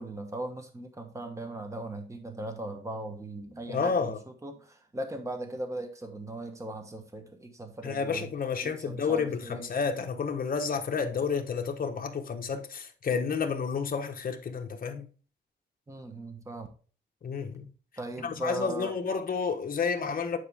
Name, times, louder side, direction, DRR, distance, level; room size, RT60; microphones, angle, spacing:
voice 1, 0.0-4.2 4.4-8.3 8.6-9.7 15.9-16.7 18.0-18.9, right 2 dB, 15° right, 1.2 m, -38 dB
voice 2, 3.7-4.2 7.8-15.1 17.2-17.7 18.2-20.4, left 5 dB, 50° left, 1.2 m, -30 dB
9.6 x 4.6 x 3.5 m
wide cardioid pair, 145°, 19 cm